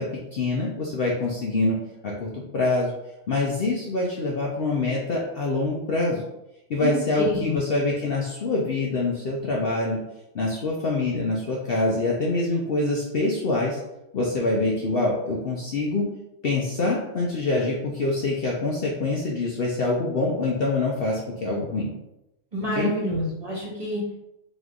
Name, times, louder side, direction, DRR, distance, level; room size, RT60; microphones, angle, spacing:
voice 1, 0.0-1.8 2.0-2.9 3.3-6.2 6.7-10.0 10.3-13.8 14.1-16.1 16.4-21.9 22.8-22.9, left 2 dB, 55° left, -3 dB, 0.7 m, -25 dB
voice 2, 6.8-7.6 22.5-24.2, left 1 dB, 30° right, -5 dB, 1.4 m, -28 dB
3.6 x 3.0 x 3.7 m, 0.91 s
omnidirectional pair, 1.4 m